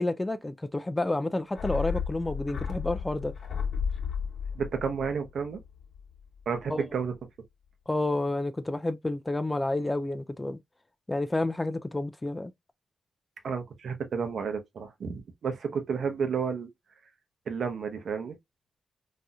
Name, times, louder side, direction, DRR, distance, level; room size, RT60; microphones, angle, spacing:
voice 1, 0.0-3.3 6.7-6.8 7.9-10.6 11.1-12.5, left 2 dB, 15° left, 0.3 m, -30 dB
sound 1, 1.5-6.2 6.4-6.5, left 6 dB, 65° left, 1.1 m, -33 dB
voice 2, 4.5-5.6 6.5-7.1 13.4-16.7 17.5-18.4, right 6 dB, 70° right, 0.8 m, -31 dB
4.0 x 2.7 x 2.3 m
cardioid pair, 110°, 0 cm